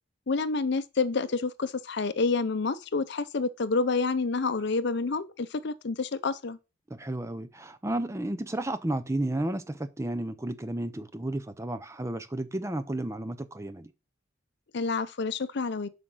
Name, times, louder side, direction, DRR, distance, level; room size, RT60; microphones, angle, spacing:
voice 1, 0.3-6.6 14.7-15.9, left 4 dB, 60° left, 0.6 m, -28 dB
voice 2, 6.9-13.9, right 1 dB, 15° right, 0.6 m, -32 dB
7.7 x 5.2 x 6.1 m
head